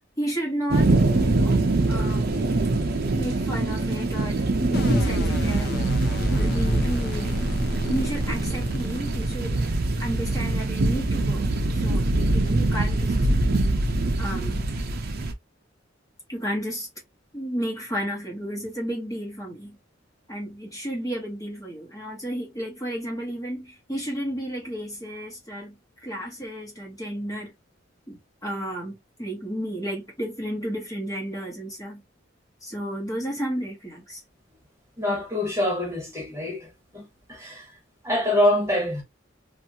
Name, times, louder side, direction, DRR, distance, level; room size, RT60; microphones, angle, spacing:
voice 1, 0.2-1.6 1.9-2.4 3.2-5.8 6.3-7.4 7.9-9.6 10.0-13.2 14.2-14.7 16.3-16.9 17.3-19.8 20.3-27.5 28.1-32.0 32.6-34.2, equal, 20° left, 1.1 m, -32 dB
sound 1, 0.7-15.3, right 2 dB, 55° right, 0.6 m, -24 dB
sound 2, 4.7-9.8, equal, 60° left, 0.7 m, -29 dB
voice 2, 35.0-37.0 37.3-37.6 38.0-39.0, left 1 dB, 15° right, 1.2 m, -25 dB
2.8 x 2.4 x 2.7 m
head